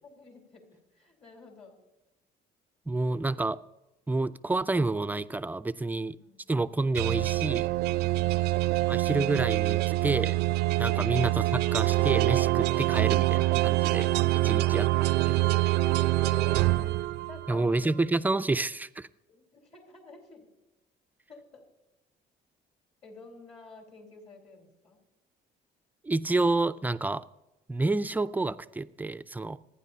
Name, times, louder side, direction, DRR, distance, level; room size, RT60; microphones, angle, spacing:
voice 1, 0.0-1.8 5.9-6.4 8.0-8.5 10.8-11.1 12.9-13.1 14.3-15.1 15.8-18.0 19.3-20.5 21.3-21.6 23.0-25.0, left 4 dB, 40° left, 3.6 m, -50 dB
voice 2, 2.9-3.6 4.1-6.2 6.5-7.7 8.9-10.4 10.8-14.1 14.4-14.8 15.2-15.4 17.5-19.1 26.0-27.3 27.7-29.6, right 2 dB, 10° right, 0.3 m, -29 dB
sound 1, 7.0-17.6, right 18 dB, 80° right, 0.4 m, -25 dB
26.5 x 9.9 x 2.8 m
cardioid pair, 110°, 17 cm